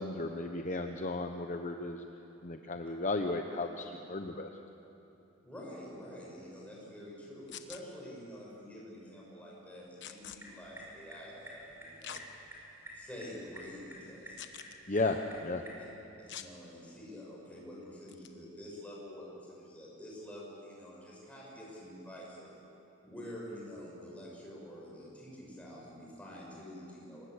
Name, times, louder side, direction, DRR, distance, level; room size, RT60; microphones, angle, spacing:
voice 1, 0.0-2.0 2.4-4.5 14.9-15.2 15.4-15.6, left 2 dB, 35° left, 5 dB, 0.9 m, -34 dB
voice 2, 5.4-12.2 12.9-14.3 14.8-15.2 16.2-22.5 23.0-27.3, equal, 5° left, -4 dB, 6.4 m, -47 dB
sound 1, 7.5-7.8 10.0-10.4 12.0-12.2 12.9-13.0 14.4-14.8 16.3-16.5 18.1-18.3, left 10 dB, 55° left, 1.1 m, -45 dB
sound 2, 10.2-15.9, equal, 10° right, 5.4 m, -51 dB
24.0 x 20.0 x 8.2 m, 2.9 s
head